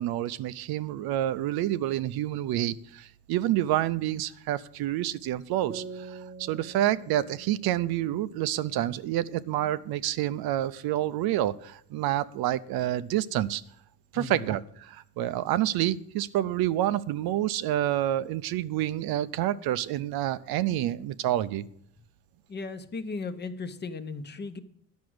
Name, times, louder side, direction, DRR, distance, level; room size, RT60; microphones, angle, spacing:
voice 1, 0.0-13.6 14.1-21.7, right 13 dB, 85° right, 14 dB, 0.7 m, -28 dB
sound 1, 5.7-9.2, right 4 dB, 25° right, 0.7 m, -45 dB
voice 2, 22.5-24.6, left 4 dB, 30° left, 10 dB, 0.9 m, -36 dB
10.5 x 6.2 x 7.8 m, 0.68 s
cardioid pair, 140°, 36 cm